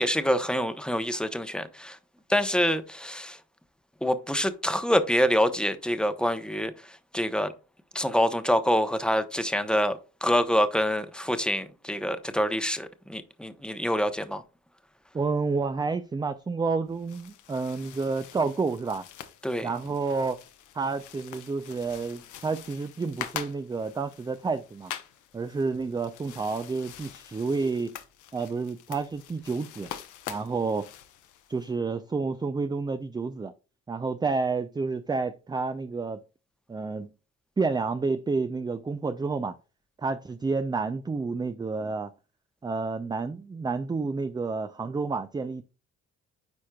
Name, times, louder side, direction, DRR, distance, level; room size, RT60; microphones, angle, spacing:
voice 1, 0.0-2.0 2.3-3.4 4.0-6.7 7.1-7.5 7.9-14.4 19.4-19.7, equal, 5° left, 0.8 m, -26 dB
voice 2, 15.1-19.0 19.6-20.4 20.7-24.9 25.3-28.0 28.3-29.9 30.3-30.9 31.5-33.5 33.9-36.2 36.7-37.1 37.6-39.5 40.0-42.1 42.6-45.6, right 4 dB, 15° right, 0.4 m, -30 dB
sound 1, 16.9-31.7, left 10 dB, 80° left, 0.9 m, -44 dB
9.5 x 4.3 x 2.3 m
cardioid pair, 90°, 30 cm